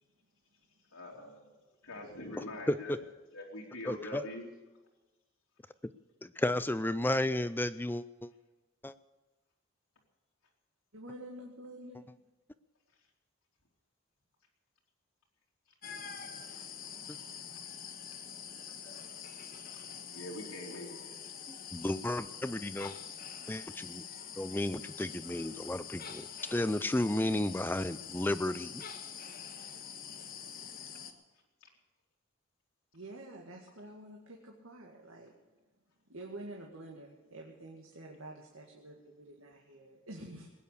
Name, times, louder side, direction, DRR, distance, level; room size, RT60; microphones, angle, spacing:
voice 1, 0.9-1.5 1.8-2.9 3.3-4.5 16.5-16.6 20.1-21.3 31.6-31.7, left 1 dB, 90° left, -3 dB, 3.3 m, -44 dB
voice 2, 3.9-4.2 6.2-8.3 8.8-8.9 17.1-17.2 21.5-23.0 23.5-24.0 24.4-28.9, left 1 dB, 10° left, 14 dB, 0.4 m, -33 dB
voice 3, 10.9-12.1 32.9-35.3 36.1-40.5, right 1 dB, 75° right, 0 dB, 2.1 m, -48 dB
sound 1, 15.8-31.1, left 7 dB, 40° left, 1.4 m, -45 dB
20.5 x 9.5 x 6.8 m, 1.2 s
head